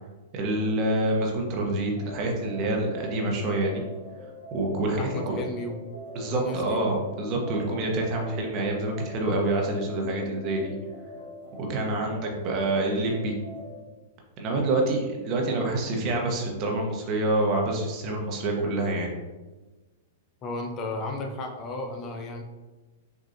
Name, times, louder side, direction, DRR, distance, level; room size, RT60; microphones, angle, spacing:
voice 1, 0.3-3.8 4.5-5.4 6.1-10.7 11.6-13.3 14.4-19.1, right 2 dB, 40° right, 0 dB, 1.1 m, -27 dB
sound 1, 2.0-13.8, left 2 dB, 65° left, 1.0 m, -43 dB
voice 2, 5.0-5.9 6.3-6.9 20.4-22.4, left 2 dB, 35° left, 4 dB, 0.6 m, -34 dB
6.3 x 2.6 x 2.8 m, 1.2 s
hypercardioid pair, 105°, 0 cm